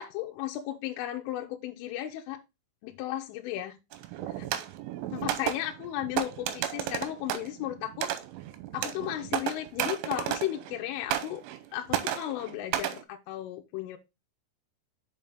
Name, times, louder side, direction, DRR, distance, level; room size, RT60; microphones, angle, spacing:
voice 1, 0.0-2.4 2.8-3.8 4.4-4.5 5.1-8.1 8.7-11.4 11.7-14.0, left 13 dB, 85° left, 3.2 m, -35 dB
sound 1, 3.9-10.8 11.1-11.6 11.9-13.0, right 12 dB, 85° right, 3.2 m, -33 dB
6.9 x 5.5 x 3.5 m
omnidirectional pair, 5.8 m